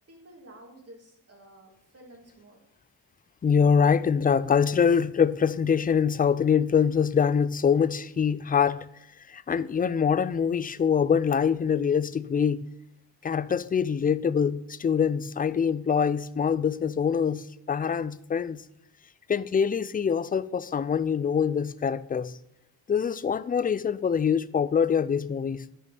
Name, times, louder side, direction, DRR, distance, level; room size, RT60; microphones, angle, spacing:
voice 1, 0.1-2.6, right 1 dB, 35° right, 2.9 m, -51 dB
voice 2, 3.4-8.9 9.3-12.6 13.2-18.6 19.3-22.4 22.9-25.7, left 7 dB, 20° left, 0.4 m, -24 dB
11.0 x 5.2 x 4.2 m
cardioid pair, 85°, 41 cm